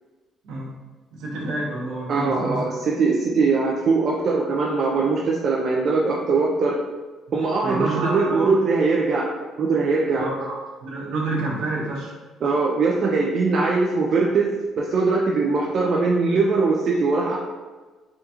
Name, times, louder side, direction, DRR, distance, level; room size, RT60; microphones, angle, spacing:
voice 1, 0.4-0.8 1.1-2.6 7.6-8.5 10.2-10.4 10.8-12.1, right 2 dB, 85° right, -4 dB, 0.9 m, -28 dB
voice 2, 2.1-6.8 7.3-9.3 9.6-10.6 12.4-14.5 14.8-17.4, right 4 dB, 55° right, -2 dB, 0.4 m, -21 dB
3.6 x 2.2 x 2.8 m, 1.3 s
cardioid pair, 85°, 0 cm